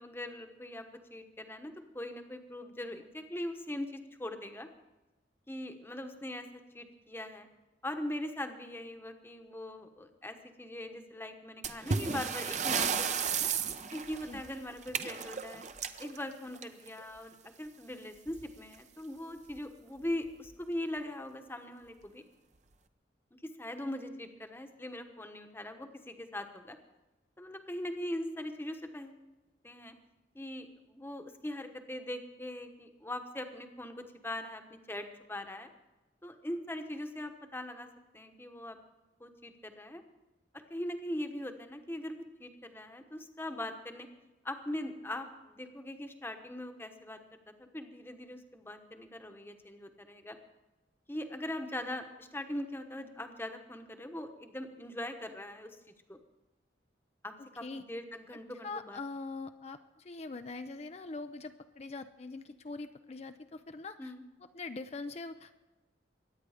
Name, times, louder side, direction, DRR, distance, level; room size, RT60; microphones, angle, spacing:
voice 1, 0.0-4.7 5.5-6.5 6.7-7.5 7.8-13.5 13.9-15.6 16.0-22.2 23.6-26.8 27.4-29.2 29.6-29.9 30.3-35.7 36.2-37.9 38.1-38.8 39.2-40.0 40.5-44.1 44.4-47.2 47.6-50.4 51.1-55.7 56.1-56.2 57.2-59.0 64.0-64.2, left 1 dB, 10° left, 6 dB, 1.1 m, -41 dB
sound 1, 11.6-17.0 18.3-18.4 18.7-18.8 19.5-19.6 20.3-20.5, right 6 dB, 40° right, 0.8 m, -34 dB
voice 2, 58.3-64.1 64.4-65.6, left 3 dB, 35° left, 8 dB, 0.5 m, -43 dB
23.0 x 9.6 x 5.0 m, 1.1 s
head